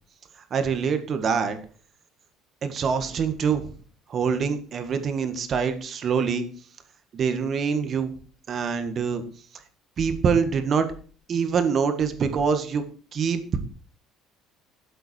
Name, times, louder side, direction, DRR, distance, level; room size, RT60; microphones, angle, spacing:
voice 1, 0.5-1.6 2.6-3.6 4.1-6.4 7.1-8.1 8.5-9.2 10.0-10.9 11.3-12.8 13.1-13.4, right 6 dB, 40° right, 9 dB, 1.6 m, -24 dB
13.0 x 7.8 x 4.4 m, 0.41 s
cardioid pair, 130°, 0 cm